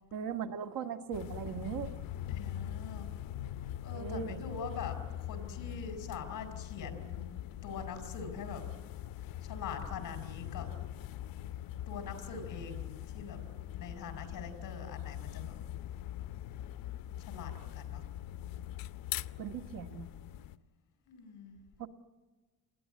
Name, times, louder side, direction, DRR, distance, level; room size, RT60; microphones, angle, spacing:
voice 1, 0.1-1.9 3.9-4.4 19.4-20.1 21.8-21.9, right 7 dB, 75° right, 7 dB, 1.7 m, -38 dB
sound 1, 1.1-20.6, left 12 dB, 80° left, 0.8 m, -42 dB
voice 2, 2.3-3.1 3.8-7.2 7.6-8.6 9.4-10.7 11.9-13.4 13.7-15.6 17.2-18.0 21.1-21.6, left 5 dB, 65° left, 7 dB, 4.1 m, -43 dB
27.0 x 20.5 x 9.6 m, 1.3 s
cardioid pair, 165°, 34 cm